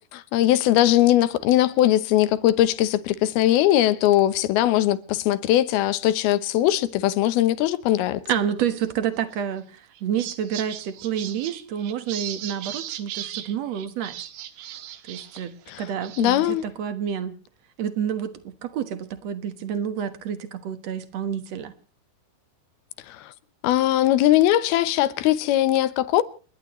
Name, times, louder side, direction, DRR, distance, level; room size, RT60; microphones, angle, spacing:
voice 1, 0.3-8.2 15.7-15.8 16.2-16.7 23.1-23.3 23.6-26.2, left 13 dB, 80° left, 2.8 m, -20 dB
voice 2, 8.3-14.2 15.1-17.3 17.8-21.7, right 9 dB, 60° right, 2.0 m, -29 dB
sound 1, 9.3-9.6 10.0-15.5 15.8-16.4, right 12 dB, 85° right, 3.3 m, -37 dB
29.5 x 12.0 x 3.1 m
omnidirectional pair, 4.5 m